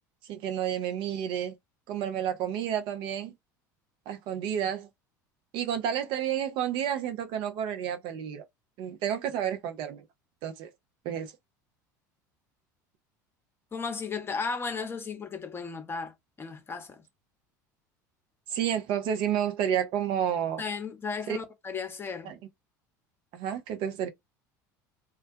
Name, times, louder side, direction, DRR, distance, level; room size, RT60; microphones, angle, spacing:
voice 1, 0.3-1.6 1.9-3.3 4.1-4.9 5.5-8.4 8.8-10.0 10.4-10.7 11.0-11.3 18.5-20.6 21.3-21.4 22.2-22.3 23.3-24.1, right 9 dB, 55° right, 0.6 m, -30 dB
voice 2, 13.7-17.0 20.6-22.3, left 5 dB, 25° left, 0.8 m, -35 dB
2.2 x 2.2 x 2.6 m
hypercardioid pair, 75°, 10 cm